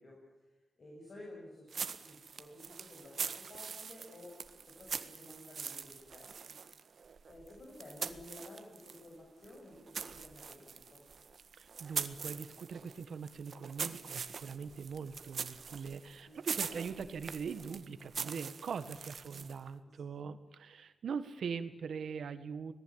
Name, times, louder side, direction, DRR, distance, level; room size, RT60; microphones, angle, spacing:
voice 1, 0.0-4.4 4.6-6.6 7.3-11.1 16.2-16.5 19.8-20.2, left 1 dB, 45° left, -2 dB, 7.2 m, -53 dB
sound 1, 1.7-9.1 9.4-19.7, right 6 dB, 60° right, 1.5 m, -43 dB
voice 2, 11.5-22.7, right 6 dB, 80° right, 11 dB, 1.7 m, -42 dB
25.5 x 19.0 x 9.0 m, 1.1 s
wide cardioid pair, 155°, 0 cm